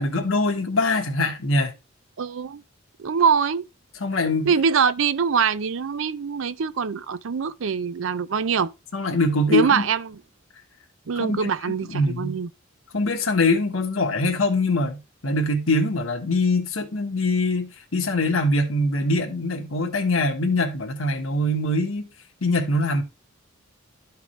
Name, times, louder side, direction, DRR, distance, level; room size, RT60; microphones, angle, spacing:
voice 1, 0.0-1.7 4.0-4.5 8.9-9.8 11.2-11.5 11.9-12.4 12.9-22.1 22.4-23.0, left 2 dB, 85° left, 1.4 m, -23 dB
voice 2, 2.2-2.6 3.0-3.7 4.5-8.7 9.5-10.2 11.1-12.5, right 6 dB, 70° right, 0.5 m, -23 dB
12.5 x 4.7 x 3.2 m
head